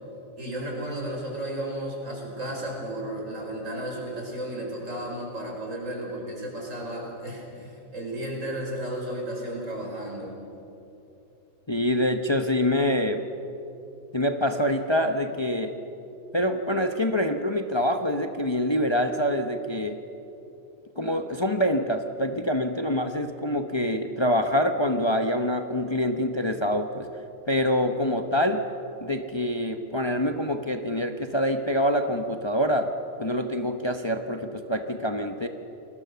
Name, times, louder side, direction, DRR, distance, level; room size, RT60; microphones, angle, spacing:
voice 1, 0.4-10.4, right 1 dB, 75° right, 0 dB, 5.5 m, -33 dB
voice 2, 11.7-13.2 14.1-15.7 16.3-20.0 21.0-27.1 27.5-28.7 29.0-32.9 33.2-35.5, equal, 25° left, 6 dB, 0.9 m, -25 dB
29.0 x 20.0 x 6.9 m, 2.9 s
omnidirectional pair, 1.3 m